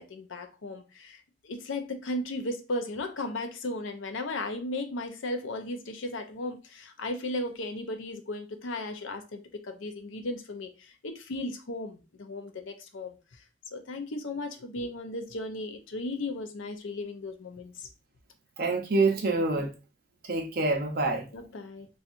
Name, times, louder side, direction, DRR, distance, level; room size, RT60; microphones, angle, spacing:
voice 1, 0.0-13.2 13.7-17.9 19.6-19.7 21.3-21.9, left 2 dB, 75° left, 0.6 m, -36 dB
voice 2, 18.6-19.7 20.2-21.3, right 3 dB, 50° right, 0.7 m, -26 dB
4.2 x 2.4 x 2.5 m
head